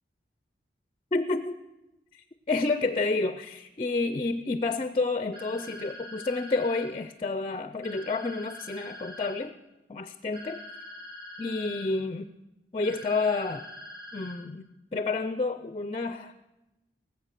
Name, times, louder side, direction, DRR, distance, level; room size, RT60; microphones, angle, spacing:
voice 1, 1.1-1.6 2.1-9.5 9.9-10.6 11.4-12.3 12.7-13.7 14.1-14.7 14.9-16.3, left 3 dB, 30° left, 11 dB, 0.4 m, -29 dB
sound 1, 5.3-6.9 7.8-9.4 10.3-11.9 12.8-14.4, left 1 dB, 50° right, 2.7 m, -44 dB
19.0 x 8.0 x 6.7 m, 1.0 s
head